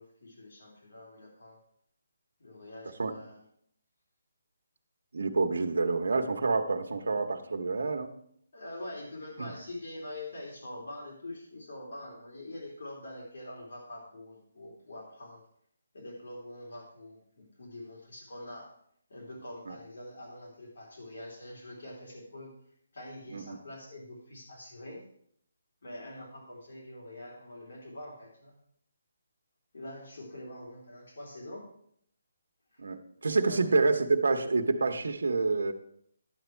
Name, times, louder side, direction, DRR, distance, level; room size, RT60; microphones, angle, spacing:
voice 1, 0.0-1.6 2.4-3.4 8.5-15.4 15.9-18.7 19.1-22.6 22.9-25.0 25.8-28.6 29.7-31.7 32.7-32.8 33.4-33.8, left 1 dB, 60° left, -2 dB, 3.2 m, -45 dB
voice 2, 5.1-8.1 9.4-9.5 19.7-19.8 23.3-23.6 32.8-35.7, right 3 dB, 80° right, 5 dB, 1.0 m, -28 dB
11.0 x 7.1 x 4.5 m, 0.68 s
hypercardioid pair, 175°, 0 cm